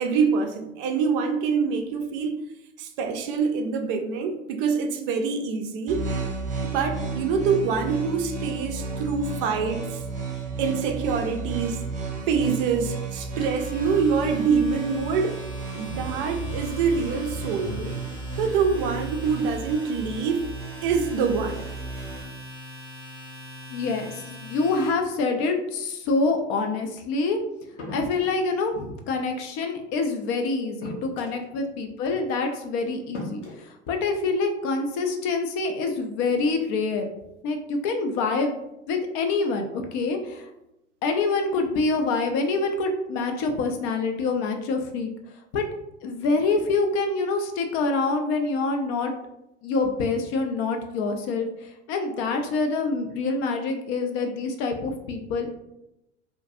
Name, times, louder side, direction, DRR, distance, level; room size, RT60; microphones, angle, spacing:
voice 1, 0.0-2.4 2.8-6.0 6.6-10.0 10.6-11.8 12.3-15.4 15.7-18.0 18.4-20.4 20.8-21.6, right 5 dB, 50° right, 5 dB, 0.4 m, -25 dB
sound 1, 5.9-22.2, right 4 dB, 20° right, 0.8 m, -33 dB
Domestic sounds home sounds, 13.0-24.9, left 1 dB, 10° left, 0.7 m, -43 dB
voice 2, 23.7-27.4 27.9-37.1 37.4-38.6 38.9-40.5 41.0-45.1 45.5-45.7 46.0-49.1 49.6-55.5, left 3 dB, 40° left, 4 dB, 0.4 m, -26 dB
sound 2, 27.8-28.4 29.9-30.0 30.8-31.5 32.5-32.6 33.1-33.6, equal, 85° left, 0.9 m, -38 dB
2.5 x 2.2 x 2.6 m, 0.88 s
hypercardioid pair, 85°, 35 cm